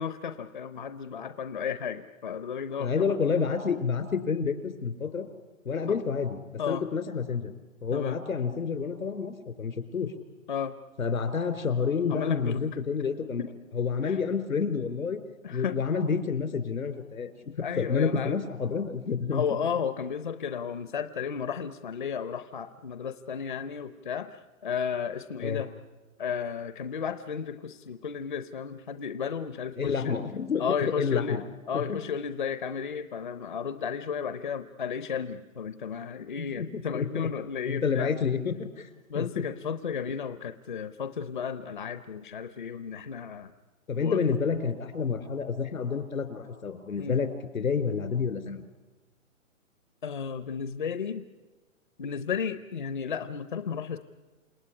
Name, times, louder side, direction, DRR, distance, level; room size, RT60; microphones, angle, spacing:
voice 1, 0.0-3.2 6.6-6.8 7.9-8.2 10.5-10.8 12.1-12.6 13.4-13.5 14.0-14.2 15.4-15.8 17.6-18.4 19.3-24.3 24.6-25.7 26.2-30.2 30.6-38.1 39.1-43.5 44.0-44.2 47.0-47.2 50.0-51.3 52.0-54.0, left 7 dB, 35° left, 11 dB, 0.8 m, -33 dB
voice 2, 2.8-5.3 5.7-7.5 7.8-10.1 11.0-13.5 13.7-15.2 15.5-19.4 25.4-25.6 29.8-30.6 31.0-31.4 31.7-32.0 36.4-37.3 37.7-38.9 39.1-39.4 43.9-47.3 47.5-48.6, left 5 dB, 85° left, 9 dB, 3.8 m, -29 dB
28.0 x 18.0 x 9.8 m, 1.2 s
hypercardioid pair, 180°, 41 cm